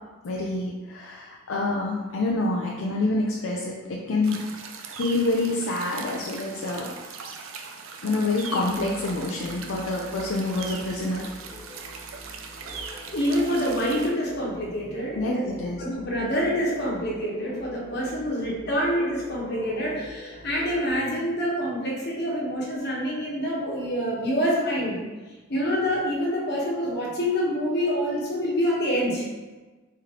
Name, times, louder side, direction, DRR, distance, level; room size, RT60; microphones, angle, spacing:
voice 1, 0.2-4.4 5.0-6.9 8.0-11.3 15.2-15.8, left 2 dB, 70° left, -2 dB, 0.5 m, -27 dB
sound 1, 4.2-14.1, right 5 dB, 65° right, 0.5 m, -40 dB
sound 2, 8.7-20.9, left 1 dB, 35° left, 0.8 m, -44 dB
voice 2, 13.1-15.5 15.8-25.0 25.5-29.3, equal, 50° left, -4 dB, 1.1 m, -26 dB
4.3 x 3.3 x 3.8 m, 1.3 s
head